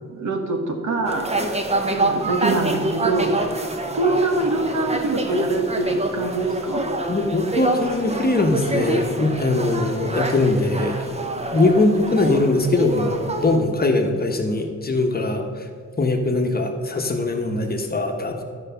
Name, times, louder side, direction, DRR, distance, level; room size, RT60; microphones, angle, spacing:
voice 1, 0.1-1.5 1.8-3.3 3.9-6.9, right 2 dB, 80° right, 3 dB, 1.4 m, -24 dB
sound 1, 1.1-13.6, right 1 dB, 20° right, 0.8 m, -26 dB
voice 2, 7.1-11.1 11.5-15.7 16.0-18.4, left 2 dB, 30° left, 3 dB, 1.0 m, -21 dB
13.0 x 4.8 x 5.6 m, 2.1 s
wide cardioid pair, 105°, 29 cm